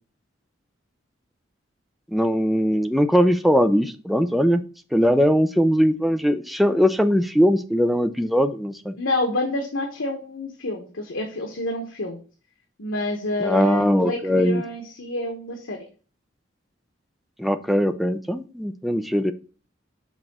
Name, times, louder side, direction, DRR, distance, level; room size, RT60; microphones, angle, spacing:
voice 1, 2.1-4.6 4.9-8.9 13.4-14.6 17.4-19.3, equal, ahead, 9 dB, 0.4 m, -20 dB
voice 2, 9.0-12.2 12.8-15.8, left 2 dB, 90° left, 3 dB, 1.2 m, -28 dB
6.0 x 3.9 x 6.0 m, 0.37 s
head